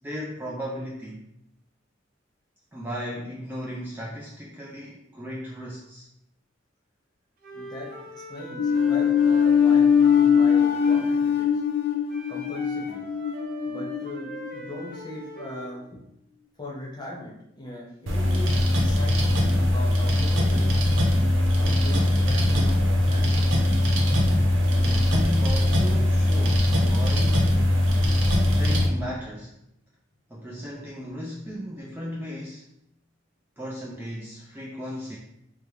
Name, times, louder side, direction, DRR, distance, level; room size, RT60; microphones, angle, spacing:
voice 1, 0.0-1.3 2.7-6.1 24.7-27.5 28.5-29.6 30.3-32.7 33.6-35.2, equal, 10° right, -4 dB, 0.4 m, -36 dB
Wind instrument woodwind instrument, 7.4-11.2 12.1-15.7, right 1 dB, 45° right, 0.7 m, -41 dB
voice 2, 7.5-11.6 12.3-13.0 13.6-16.0 16.6-18.5 18.8-20.8 21.6-23.6, left 1 dB, 20° left, -4 dB, 0.9 m, -39 dB
sound 1, 8.6-15.0, left 7 dB, 85° left, 0.3 m, -21 dB
sound 2, 18.1-28.9, left 1 dB, 90° right, 0.7 m, -21 dB
4.4 x 2.1 x 3.3 m, 0.79 s
head